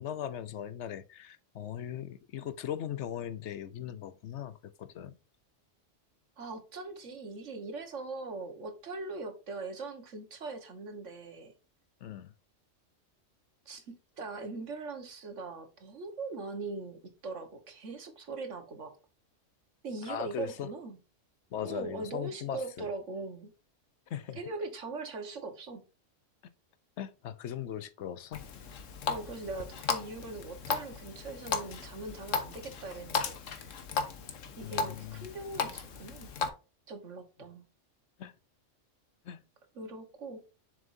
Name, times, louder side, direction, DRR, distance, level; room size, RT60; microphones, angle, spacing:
voice 1, 0.0-5.1 12.0-12.3 20.1-20.7 21.5-22.9 24.1-24.4 27.0-28.5 34.6-35.3 38.2-38.3 39.3-39.4, left 10 dB, 70° left, 0.9 m, -39 dB
voice 2, 6.4-11.5 13.6-18.9 19.8-21.0 21.6-23.5 24.3-25.8 29.1-33.7 34.6-36.3 36.9-37.6 39.7-40.4, right 3 dB, 70° right, 1.7 m, -41 dB
Water tap faucet, 28.3-36.5, left 5 dB, 85° left, 1.4 m, -36 dB
7.1 x 6.4 x 2.6 m
omnidirectional pair, 1.3 m